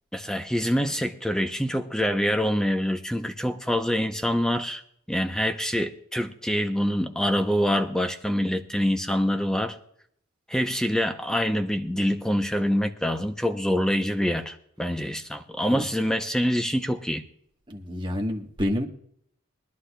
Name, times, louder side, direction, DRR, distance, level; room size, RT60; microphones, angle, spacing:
voice 1, 0.1-4.8 5.1-9.8 10.5-17.2, equal, 5° left, 7 dB, 0.6 m, -25 dB
voice 2, 17.7-18.8, left 1 dB, 20° right, 1 dB, 1.2 m, -28 dB
22.5 x 11.5 x 2.3 m, 0.67 s
head